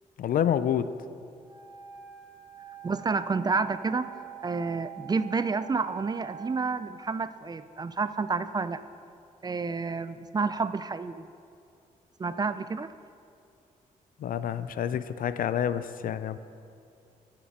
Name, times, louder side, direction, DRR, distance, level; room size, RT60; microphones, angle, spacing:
voice 1, 0.2-0.9 14.2-16.4, left 9 dB, 65° left, 13 dB, 0.4 m, -28 dB
Wind instrument woodwind instrument, 1.4-6.7, right 10 dB, 45° right, 1.5 m, -45 dB
voice 2, 2.8-4.1 4.4-8.8 9.4-11.3 12.2-12.9, right 4 dB, 25° right, 13 dB, 0.4 m, -29 dB
9.5 x 5.9 x 6.0 m, 2.5 s
cardioid pair, 75°, 15 cm